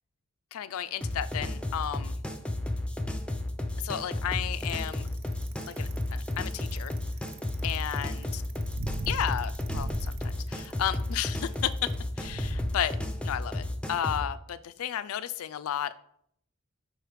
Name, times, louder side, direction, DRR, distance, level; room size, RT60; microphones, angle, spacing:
voice 1, 0.5-2.2 3.8-5.1 5.7-7.0 7.6-8.2 9.1-11.9 12.2-13.0 13.2-16.0, left 10 dB, 85° left, 14 dB, 0.4 m, -33 dB
sound 1, 1.0-14.3, left 1 dB, 5° left, 0.4 m, -33 dB
Bicycle, 4.6-12.7, right 1 dB, 60° right, 0.7 m, -38 dB
4.8 x 4.7 x 4.9 m, 0.69 s
head